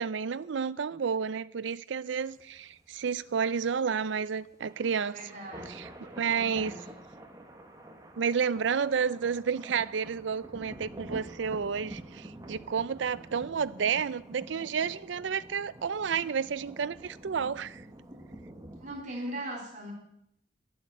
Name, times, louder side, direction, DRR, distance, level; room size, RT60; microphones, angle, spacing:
voice 1, 0.0-5.2 5.7-5.9 6.2-6.7 8.2-17.8, right 6 dB, 75° right, 0.5 m, -31 dB
sound 1, 2.2-19.0, right 1 dB, 20° right, 1.3 m, -47 dB
voice 2, 5.1-5.8 6.3-6.9 18.8-19.9, right 1 dB, 40° right, 3.6 m, -40 dB
10.5 x 9.3 x 8.3 m
head